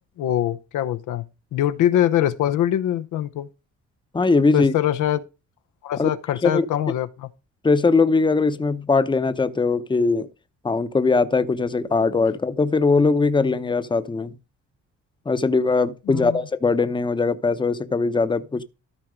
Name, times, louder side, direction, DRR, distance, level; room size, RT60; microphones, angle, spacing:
voice 1, 0.2-1.2 1.5-3.5 4.5-5.3 5.8-7.3 16.1-16.4, left 11 dB, 85° left, 0.8 m, -23 dB
voice 2, 4.1-4.7 6.0-6.1 6.4-6.7 7.6-10.3 10.6-14.3 15.3-18.6, left 4 dB, 15° left, 0.8 m, -20 dB
13.0 x 4.5 x 5.1 m
cardioid pair, 90°, 30 cm